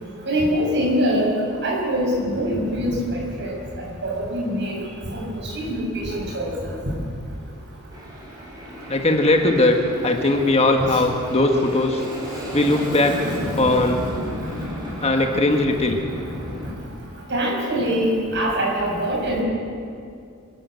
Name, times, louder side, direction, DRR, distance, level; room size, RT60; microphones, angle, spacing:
voice 1, 0.3-1.3 1.6-3.5 4.0-4.8 5.1-5.2 5.5-6.7 10.8-10.9 17.3-19.4, equal, 55° right, -3 dB, 7.4 m, -23 dB
Aircraft, 7.9-16.7, equal, 20° right, 6.1 m, -33 dB
voice 2, 8.9-9.8 10.0-12.0 12.5-13.2 13.6-14.0 15.0-16.0, left 2 dB, 30° left, 3 dB, 1.4 m, -19 dB
26.5 x 13.0 x 8.2 m, 2.4 s
head